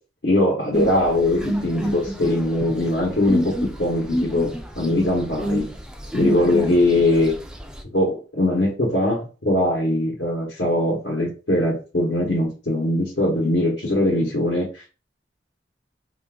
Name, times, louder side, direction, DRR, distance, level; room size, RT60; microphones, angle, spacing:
voice 1, 0.2-4.5 4.8-5.7 6.1-7.3 7.9-14.7, left 1 dB, 75° left, -3 dB, 1.1 m, -21 dB
sound 1, 0.7-7.8, equal, 5° right, 0.3 m, -29 dB
2.6 x 2.4 x 3.5 m, 0.34 s
head